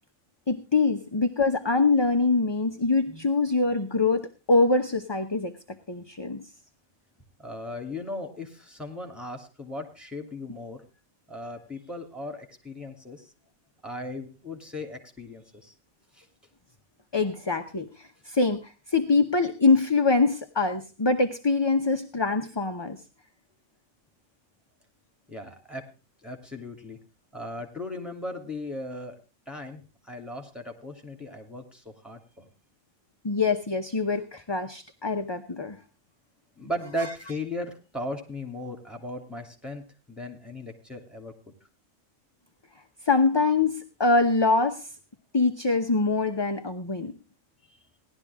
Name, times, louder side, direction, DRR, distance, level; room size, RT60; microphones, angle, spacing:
voice 1, 0.5-5.6 5.9-6.5 17.1-23.0 33.2-35.8 43.0-44.9 45.3-47.1, left 3 dB, 25° left, 6 dB, 0.8 m, -24 dB
voice 2, 7.4-10.8 11.3-13.3 13.8-15.7 16.1-16.3 25.3-25.9 26.2-27.0 27.3-29.2 29.5-29.8 30.1-32.5 36.6-41.3, left 1 dB, ahead, 3 dB, 2.9 m, -37 dB
17.5 x 12.0 x 3.6 m, 0.32 s
omnidirectional pair, 1.4 m